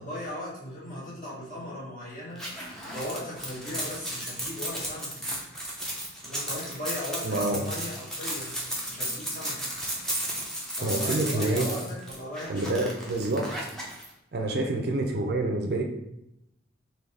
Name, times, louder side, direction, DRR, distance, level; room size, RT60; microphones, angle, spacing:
voice 1, 0.0-2.4 2.8-5.3 6.2-8.5 8.9-9.7 10.7-13.0 14.4-14.6, left 1 dB, 40° left, -6 dB, 1.4 m, -38 dB
sound 1, 2.4-14.1, right 1 dB, ahead, 0.6 m, -34 dB
voice 2, 7.2-7.6 10.8-11.7 12.5-13.5 14.3-15.8, right 2 dB, 50° right, 3 dB, 0.5 m, -27 dB
3.9 x 2.7 x 3.4 m, 0.84 s
head